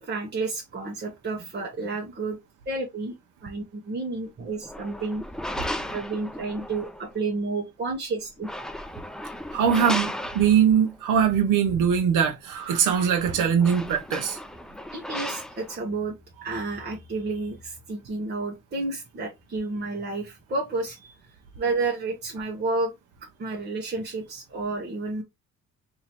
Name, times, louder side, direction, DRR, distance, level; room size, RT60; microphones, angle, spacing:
voice 1, 0.0-2.4 2.7-3.1 3.4-5.2 5.9-8.5 14.9-16.1 16.4-21.1 21.6-22.9 23.4-25.2, right 3 dB, 35° right, 1.1 m, -31 dB
sound 1, 4.5-7.1 8.3-10.9 12.9-13.0 13.3-15.8, left 1 dB, ahead, 0.4 m, -35 dB
voice 2, 9.5-14.4, right 8 dB, 85° right, 0.8 m, -22 dB
3.0 x 2.8 x 4.2 m
cardioid pair, 90°, 30 cm